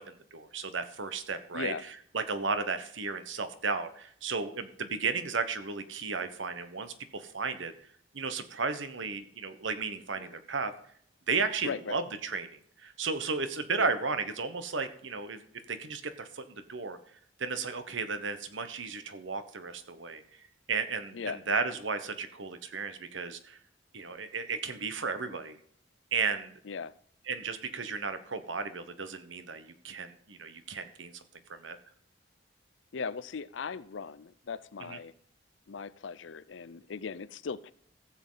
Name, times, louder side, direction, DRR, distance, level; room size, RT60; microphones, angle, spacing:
voice 1, 0.0-1.7 2.1-7.7 8.1-10.7 11.3-15.4 15.7-17.0 17.4-20.2 20.7-23.6 23.9-25.6 26.1-26.5 27.3-31.2 31.5-31.8 34.8-35.0, right 4 dB, 80° right, 10 dB, 1.1 m, -34 dB
voice 2, 11.6-12.0 13.8-13.9 21.1-21.4 26.7-26.9 32.9-35.1 35.7-37.7, left 5 dB, 75° left, 17 dB, 0.5 m, -38 dB
15.0 x 7.5 x 3.9 m, 0.63 s
head